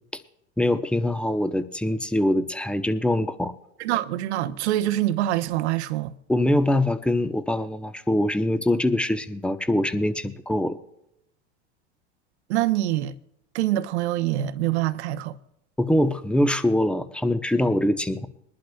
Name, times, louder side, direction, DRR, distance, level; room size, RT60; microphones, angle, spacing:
voice 1, 0.6-3.5 6.3-10.8 15.8-18.3, left 1 dB, 5° left, 0.9 m, -23 dB
voice 2, 3.8-6.1 12.5-13.1 13.5-15.4, right 14 dB, 75° right, 0.9 m, -25 dB
22.5 x 11.5 x 2.3 m
hypercardioid pair, 90°, 34 cm